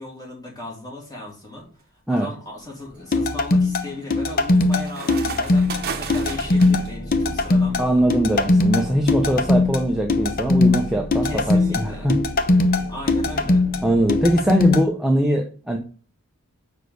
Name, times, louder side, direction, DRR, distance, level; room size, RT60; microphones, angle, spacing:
voice 1, 0.0-1.6 2.1-8.0 11.2-12.1 12.9-13.6, left 1 dB, 15° left, -2 dB, 2.3 m, -36 dB
sound 1, 1.3-1.7 2.3-6.9, right 5 dB, 45° right, 0.9 m, -35 dB
sound 2, 3.1-14.8, left 2 dB, 40° left, 0.7 m, -20 dB
sound 3, 5.5-14.4, equal, 85° left, 3.0 m, -37 dB
voice 2, 7.8-12.1 13.8-15.8, right 1 dB, ahead, 1 dB, 0.7 m, -21 dB
5.3 x 4.9 x 6.4 m, 0.39 s
head